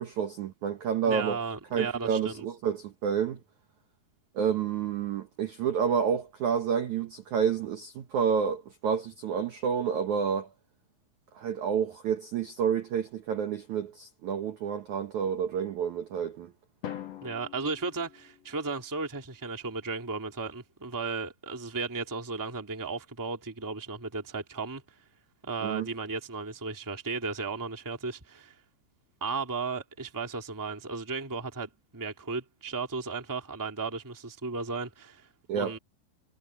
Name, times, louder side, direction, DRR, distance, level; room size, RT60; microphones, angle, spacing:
voice 1, 0.0-1.4 1.7-3.4 4.3-10.5 11.4-16.5 25.6-25.9 35.5-35.7, right 7 dB, 75° right, 1.7 m, -29 dB
voice 2, 1.0-2.4 17.2-24.8 25.4-28.5 29.2-35.3 35.5-35.8, right 4 dB, 10° right, 1.2 m, -35 dB
Drum, 16.8-18.9, left 10 dB, 75° left, 1.5 m, -43 dB
omnidirectional pair, 5.4 m